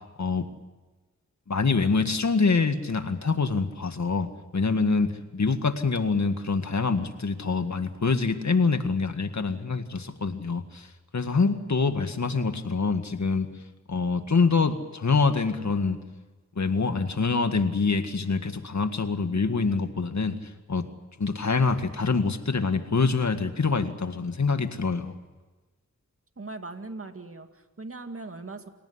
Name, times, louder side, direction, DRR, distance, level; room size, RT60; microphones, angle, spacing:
voice 1, 1.5-4.3 4.5-10.9 11.1-13.5 13.9-16.0 16.6-20.9 21.2-25.1, left 4 dB, 65° left, 8 dB, 1.9 m, -25 dB
voice 2, 26.4-28.7, right 3 dB, 45° right, 7 dB, 2.2 m, -39 dB
28.0 x 17.5 x 9.8 m, 1.2 s
wide cardioid pair, 55°, 30 cm